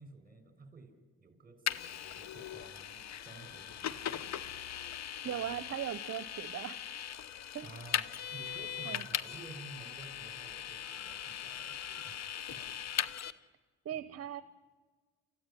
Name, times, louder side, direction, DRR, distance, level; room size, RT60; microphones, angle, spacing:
voice 1, 0.0-4.6 7.6-8.0 8.3-12.2 12.5-12.6 13.9-14.2, right 3 dB, 30° right, 8 dB, 5.4 m, -53 dB
Vehicle, 1.7-13.3, left 10 dB, 60° left, 1.0 m, -39 dB
voice 2, 5.2-6.8 7.5-7.7 8.9-9.0 13.8-14.4, right 10 dB, 55° right, 13 dB, 0.9 m, -38 dB
30.0 x 14.5 x 10.0 m, 1.5 s
cardioid pair, 90°, 30 cm